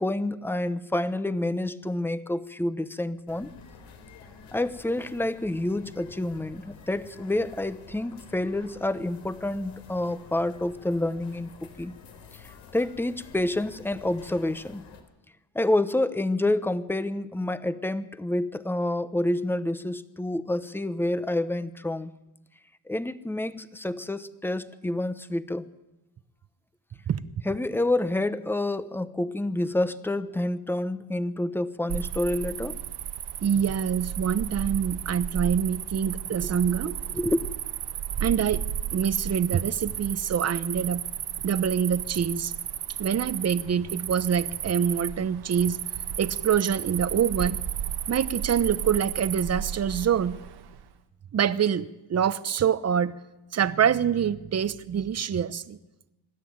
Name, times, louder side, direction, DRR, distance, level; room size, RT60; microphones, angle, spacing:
voice 1, 0.0-3.5 4.5-11.9 12.3-14.8 15.5-22.1 22.9-25.7 27.4-32.8 36.9-37.5, left 1 dB, 5° left, 13 dB, 0.9 m, -28 dB
sound 1, 3.3-15.0, left 5 dB, 85° left, 3.8 m, -49 dB
Cricket, 31.9-50.8, right 10 dB, 70° right, 1.7 m, -33 dB
voice 2, 33.4-36.9 38.2-38.6 38.9-41.0 41.4-42.5 43.0-45.8 46.2-47.6 48.1-50.4 51.3-53.1 53.5-55.8, right 8 dB, 40° right, 15 dB, 0.9 m, -25 dB
25.0 x 12.5 x 9.5 m, 1.0 s
cardioid pair, 115°, 41 cm